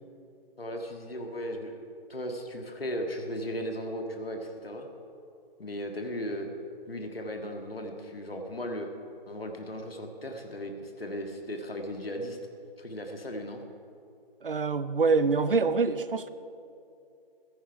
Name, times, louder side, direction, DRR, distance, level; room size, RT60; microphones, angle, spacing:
voice 1, 0.6-1.8 2.1-4.9 5.6-6.5 6.9-8.9 9.3-12.4 12.8-13.6, equal, 70° left, 3 dB, 1.8 m, -36 dB
voice 2, 14.4-16.3, right 4 dB, 60° right, 13 dB, 0.8 m, -25 dB
15.5 x 14.0 x 4.7 m, 2.6 s
figure-of-eight pair, 150°, 30 cm